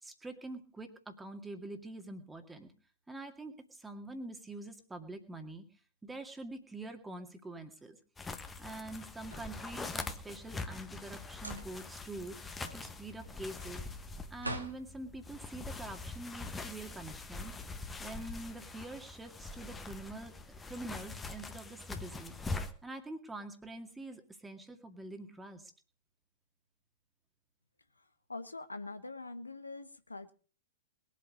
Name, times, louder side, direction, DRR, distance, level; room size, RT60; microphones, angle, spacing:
voice 1, 0.0-2.7 3.1-5.6 6.0-8.0 8.6-12.4 12.7-13.8 14.3-17.6 18.0-20.3 20.6-22.3 22.8-25.7, right 2 dB, 10° right, 6 dB, 2.1 m, -45 dB
sound 1, 8.2-22.7, left 3 dB, 10° left, 1.3 m, -43 dB
sound 2, 8.9-10.1 11.3-12.0 12.3-14.8, equal, 85° right, 2.3 m, -45 dB
voice 2, 28.3-30.3, left 3 dB, 80° left, 11 dB, 1.1 m, -43 dB
21.0 x 8.4 x 5.3 m, 0.41 s
figure-of-eight pair, 105°, 0 cm